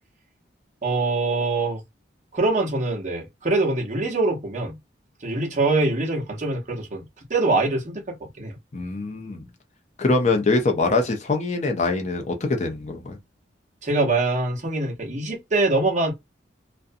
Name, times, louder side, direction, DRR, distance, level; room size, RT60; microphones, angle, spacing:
voice 1, 0.8-1.8 2.3-4.8 5.2-7.0 7.3-8.5 13.8-16.1, right 2 dB, 40° right, 0.8 m, -24 dB
voice 2, 8.7-9.5 10.0-13.2, left 3 dB, 35° left, 0.5 m, -23 dB
2.5 x 2.1 x 2.6 m
head